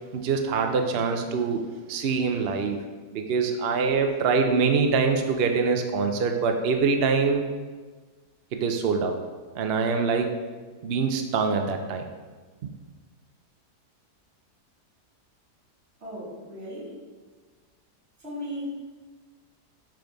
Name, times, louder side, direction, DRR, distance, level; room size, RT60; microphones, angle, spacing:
voice 1, 0.1-1.6 1.9-2.8 3.1-7.5 8.5-9.2 9.6-10.3 10.8-12.0 12.6-12.7, right 5 dB, 70° right, 4 dB, 0.5 m, -24 dB
voice 2, 16.0-17.0 18.2-18.7, left 1 dB, 40° right, -8 dB, 2.4 m, -36 dB
5.8 x 5.1 x 5.2 m, 1.4 s
omnidirectional pair, 1.7 m